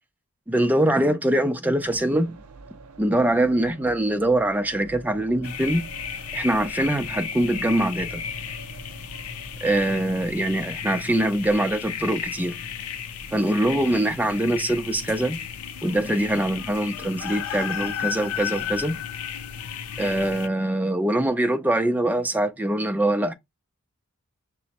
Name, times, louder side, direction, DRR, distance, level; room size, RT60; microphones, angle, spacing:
voice 1, 0.5-2.4 3.0-5.9 6.3-8.3 9.6-12.6 13.3-15.4 15.8-19.0 20.0-23.3, right 1 dB, 10° right, 0.3 m, -23 dB
sound 1, 1.7-13.5, right 4 dB, 85° right, 0.6 m, -47 dB
sound 2, 5.4-20.5, left 8 dB, 80° left, 0.5 m, -34 dB
5.9 x 2.0 x 2.8 m
head